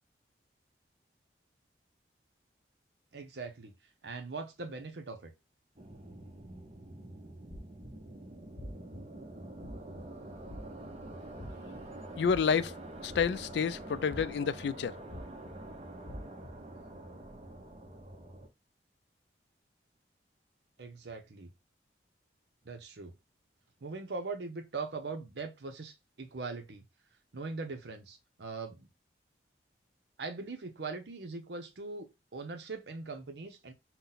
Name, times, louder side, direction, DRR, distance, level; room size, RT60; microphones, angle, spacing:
voice 1, 3.1-3.7 4.0-5.3 20.8-21.5 22.6-23.1 23.8-26.8 27.3-28.9 30.2-33.7, right 3 dB, 70° right, 0.7 m, -41 dB
sound 1, 5.8-18.5, right 1 dB, 35° right, 0.8 m, -46 dB
sound 2, 7.5-8.0 8.6-9.0 9.6-10.0 10.4-10.9 11.4-11.8 12.2-12.7 13.1-13.7 14.1-14.5 15.1-15.5 16.1-16.5, left 1 dB, 25° left, 0.6 m, -45 dB
voice 2, 12.2-12.7 13.0-14.9, left 6 dB, 70° left, 0.4 m, -29 dB
5.7 x 2.2 x 3.9 m
head